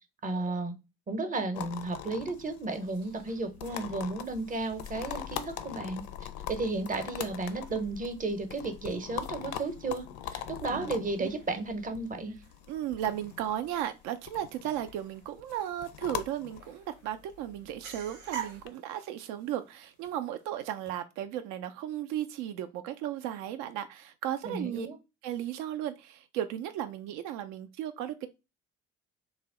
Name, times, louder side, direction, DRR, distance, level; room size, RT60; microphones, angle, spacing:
voice 1, 0.2-0.7 1.1-6.0 6.5-12.4 24.4-25.0, right 3 dB, 20° right, 0.8 m, -33 dB
sound 1, 1.5-18.7, left 10 dB, 55° left, 0.5 m, -42 dB
sound 2, 2.8-21.0, right 8 dB, 80° right, 0.8 m, -51 dB
voice 2, 12.7-24.9 25.2-28.3, right 11 dB, 55° right, 0.4 m, -35 dB
3.2 x 2.1 x 3.6 m
figure-of-eight pair, 50°, 37 cm